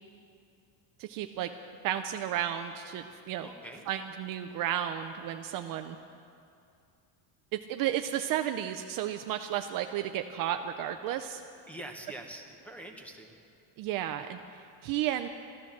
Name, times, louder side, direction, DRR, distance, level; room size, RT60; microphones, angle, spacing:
voice 1, 1.0-1.5 1.8-3.5 3.9-6.0 7.5-11.4 13.8-15.3, right 11 dB, 45° right, 7 dB, 0.5 m, -33 dB
voice 2, 3.4-3.8 11.7-13.4, right 1 dB, 5° left, 3 dB, 1.0 m, -44 dB
14.0 x 12.0 x 7.2 m, 2.5 s
cardioid pair, 160°, 47 cm